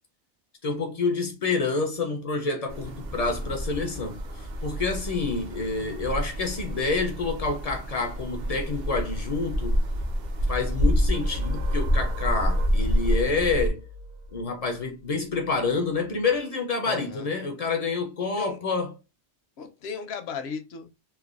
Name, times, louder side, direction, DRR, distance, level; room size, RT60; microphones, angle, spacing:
voice 1, 0.6-9.8 10.5-13.8 14.3-18.9, left 4 dB, 55° left, 0.4 m, -28 dB
sound 1, 2.7-13.7, equal, 50° right, 0.6 m, -28 dB
sound 2, 11.1-16.4, equal, 85° right, 0.9 m, -42 dB
voice 2, 16.8-17.3 18.4-18.6 19.6-21.0, left 6 dB, 70° left, 0.8 m, -36 dB
3.2 x 2.1 x 2.3 m
omnidirectional pair, 1.2 m